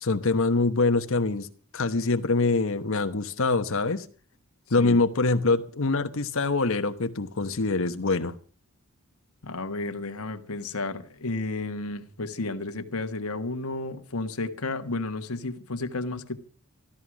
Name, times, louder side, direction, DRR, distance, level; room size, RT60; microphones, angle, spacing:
voice 1, 0.0-1.5 1.7-4.1 4.7-8.3, left 3 dB, 65° left, 1.1 m, -24 dB
voice 2, 9.4-16.4, left 2 dB, 85° left, 1.6 m, -32 dB
15.0 x 13.0 x 6.1 m
head